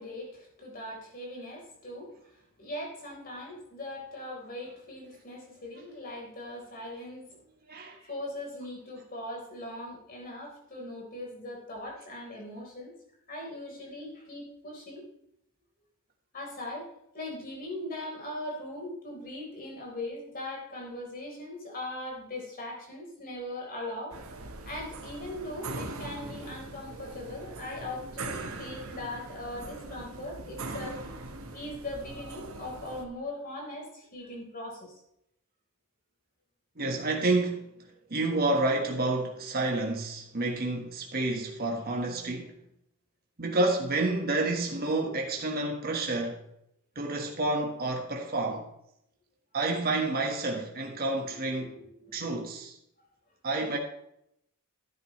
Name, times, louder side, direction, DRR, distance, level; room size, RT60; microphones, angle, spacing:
voice 1, 0.0-2.1 2.6-7.3 8.0-12.9 13.3-15.0 16.3-16.9 17.1-24.2 24.6-31.0 31.5-35.0 51.3-52.2, left 1 dB, 40° left, 4.0 m, -40 dB
sound 1, 24.1-33.1, right 3 dB, 70° right, 1.2 m, -41 dB
voice 2, 36.8-37.7 38.1-42.5 43.4-46.4 46.9-48.7 49.5-51.8 52.1-52.7 53.4-53.8, right 2 dB, 45° right, 1.4 m, -29 dB
11.5 x 9.9 x 3.2 m
head